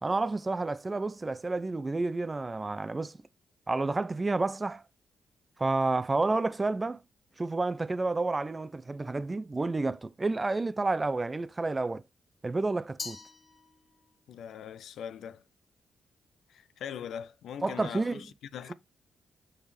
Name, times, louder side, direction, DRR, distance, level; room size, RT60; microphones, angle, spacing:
voice 1, 0.0-3.2 3.7-4.8 5.6-7.0 7.4-12.0 12.4-13.2 17.6-18.2, right 3 dB, 30° right, 0.5 m, -30 dB
Glass, 13.0-14.2, left 4 dB, 40° left, 1.3 m, -43 dB
voice 2, 14.3-15.4 16.5-18.7, left 8 dB, 80° left, 0.4 m, -41 dB
7.1 x 5.0 x 3.3 m
supercardioid pair, 55°, 0 cm